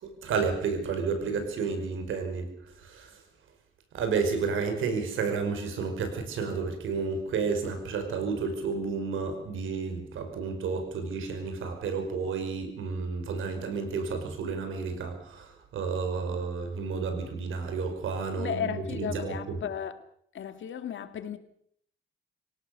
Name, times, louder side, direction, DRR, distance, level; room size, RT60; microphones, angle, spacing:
voice 1, 0.0-2.5 2.8-3.1 3.9-19.6, right 5 dB, 85° right, 7 dB, 5.6 m, -31 dB
voice 2, 18.4-20.0 20.3-21.4, left 8 dB, 75° left, 9 dB, 2.3 m, -34 dB
26.0 x 17.5 x 6.9 m, 0.67 s
cardioid pair, 80°, 20 cm